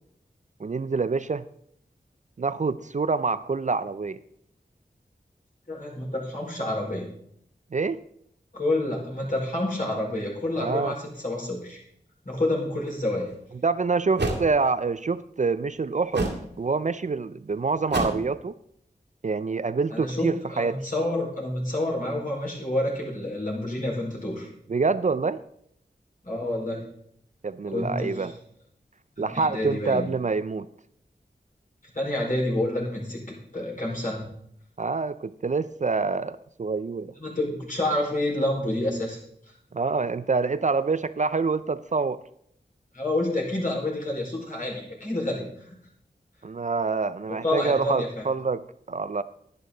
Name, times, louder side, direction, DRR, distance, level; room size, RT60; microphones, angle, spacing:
voice 1, 0.6-1.5 2.4-4.2 7.7-8.0 10.6-10.9 13.6-16.3 16.6-18.6 19.2-20.8 24.7-25.4 27.4-28.3 29.2-30.7 34.8-37.1 39.7-42.2 46.4-49.2, right 4 dB, 45° right, 14 dB, 0.4 m, -26 dB
voice 2, 5.7-7.1 8.5-11.8 12.2-13.3 19.9-24.5 26.2-26.8 27.7-28.3 29.2-30.1 31.9-33.2 33.5-34.3 37.2-39.2 42.9-45.7 47.3-48.2, left 1 dB, 50° left, -3 dB, 4.7 m, -28 dB
sound 1, 13.3-13.4 14.2-14.4 16.1-16.5 17.9-18.3, right 2 dB, 80° right, 1.9 m, -27 dB
11.0 x 10.0 x 3.9 m, 0.71 s
wide cardioid pair, 50°, 18 cm